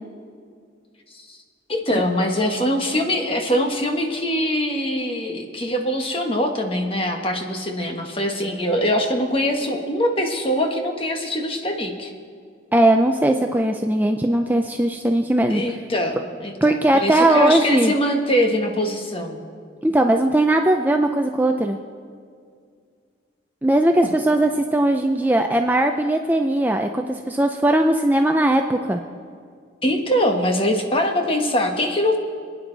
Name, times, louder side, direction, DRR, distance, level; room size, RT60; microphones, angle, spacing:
voice 1, 1.7-12.1 15.5-19.4 24.0-24.1 29.8-32.2, equal, 30° left, 3 dB, 1.4 m, -23 dB
voice 2, 12.7-15.6 16.6-17.9 19.8-21.8 23.6-29.0, right 1 dB, 10° right, 4 dB, 0.4 m, -19 dB
27.0 x 9.7 x 4.0 m, 2.2 s
head